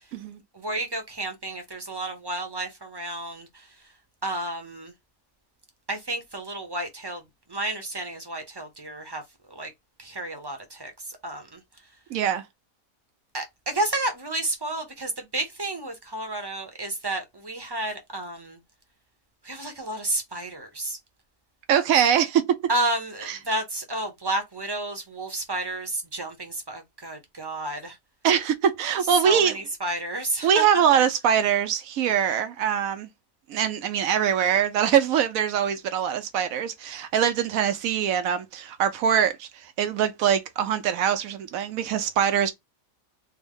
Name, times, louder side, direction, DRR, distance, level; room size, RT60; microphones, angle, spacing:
voice 1, 0.5-3.5 4.2-4.9 5.9-7.2 7.5-9.2 9.5-9.7 10.0-10.9 11.2-11.6 13.3-18.6 19.4-21.0 22.7-28.0 29.2-30.6, right 2 dB, 25° right, 0.6 m, -31 dB
voice 2, 12.1-12.4 21.7-22.6 23.2-23.4 28.2-29.6 30.4-33.1 33.5-42.5, right 8 dB, 80° right, 1.1 m, -23 dB
3.4 x 2.1 x 3.6 m
omnidirectional pair, 1.4 m